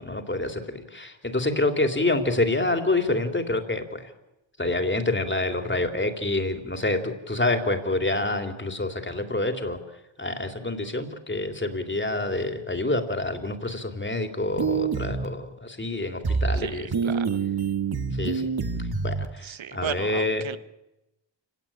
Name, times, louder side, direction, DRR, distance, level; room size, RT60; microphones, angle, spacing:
voice 1, 0.0-4.1 4.6-9.8 10.2-17.2 18.1-18.5 18.8-20.5, left 2 dB, 25° left, 6 dB, 3.3 m, -27 dB
sound 1, 14.6-15.2 16.2-16.6 16.9-19.2, right 5 dB, 55° right, 2.0 m, -26 dB
voice 2, 19.5-20.6, right 9 dB, 80° right, 14 dB, 1.2 m, -34 dB
28.0 x 17.5 x 9.0 m, 0.93 s
cardioid pair, 65°, 46 cm